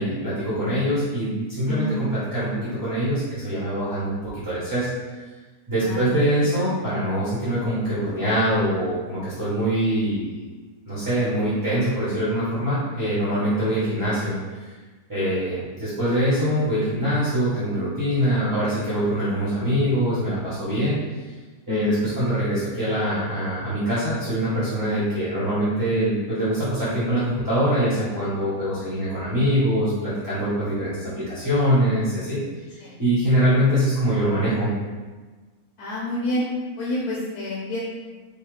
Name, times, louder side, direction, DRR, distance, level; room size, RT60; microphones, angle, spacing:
voice 1, 0.0-1.8 2.3-4.9 5.7-10.3 10.9-14.7 15.1-21.0 21.7-32.4 32.7-34.7, equal, 15° right, -12 dB, 1.0 m, -23 dB
voice 2, 1.6-2.0 5.8-6.5 21.7-22.1 32.8-33.0 35.8-36.5 36.8-37.8, left 1 dB, 85° left, -6 dB, 1.2 m, -28 dB
4.0 x 2.4 x 3.1 m, 1.3 s
omnidirectional pair, 1.5 m